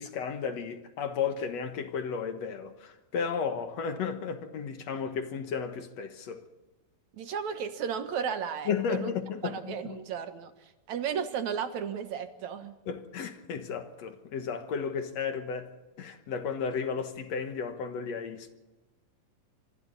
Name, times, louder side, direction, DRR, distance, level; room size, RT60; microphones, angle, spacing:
voice 1, 0.0-6.4 8.7-10.0 12.9-18.5, left 6 dB, 60° left, 2.1 m, -34 dB
voice 2, 7.1-9.1 9.4-12.7, right 7 dB, 60° right, 2.3 m, -34 dB
26.0 x 25.0 x 4.1 m
omnidirectional pair, 4.2 m